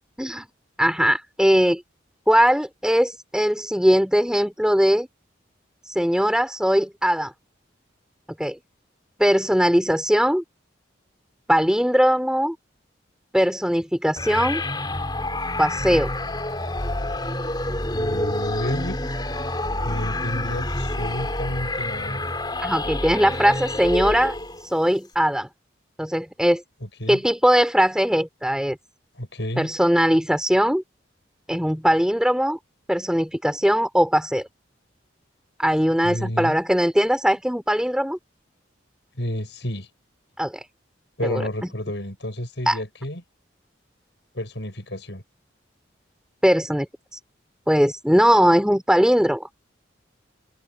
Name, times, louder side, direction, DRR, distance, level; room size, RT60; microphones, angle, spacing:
voice 1, 0.8-1.8 2.3-5.1 5.9-7.3 8.4-8.6 9.2-10.4 11.5-12.6 13.3-14.6 15.6-16.1 22.6-24.4 24.6-25.5 26.0-26.6 27.1-28.8 29.6-30.8 31.5-32.6 32.9-34.5 35.6-38.2 40.4-40.6 41.2-41.4 42.7-42.8 46.4-46.9 47.1-47.2 47.7-49.5, equal, 5° right, 3.6 m, -20 dB
sound 1, 14.2-24.7, left 1 dB, 20° left, 3.4 m, -28 dB
voice 2, 17.9-19.0 19.8-22.3 27.0-27.2 29.2-29.7 36.0-36.6 39.2-39.9 41.2-43.2 44.3-45.2, left 1 dB, 65° left, 7.0 m, -30 dB
head